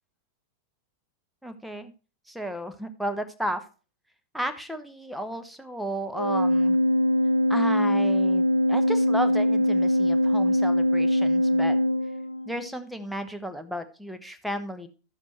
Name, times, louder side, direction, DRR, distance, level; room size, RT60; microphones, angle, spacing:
voice 1, 1.4-1.9 2.3-3.6 4.3-6.8 7.5-11.8 12.5-14.9, right 1 dB, ahead, 8 dB, 1.0 m, -33 dB
Organ, 6.1-12.7, left 1 dB, 90° left, 0.5 m, -22 dB
12.0 x 7.2 x 3.1 m, 0.34 s
figure-of-eight pair, 90°, 0 cm